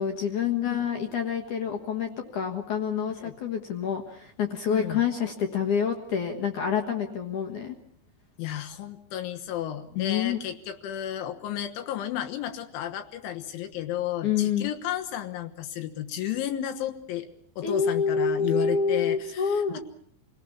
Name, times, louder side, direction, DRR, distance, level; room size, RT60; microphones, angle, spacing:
voice 1, 0.0-7.8 10.0-10.4 14.2-14.7 17.6-19.8, left 7 dB, 65° left, 3 dB, 2.0 m, -27 dB
voice 2, 4.7-5.0 8.4-17.3 17.6-19.8, left 11 dB, 80° left, 6 dB, 3.5 m, -33 dB
27.0 x 18.5 x 7.2 m, 0.66 s
omnidirectional pair, 5.5 m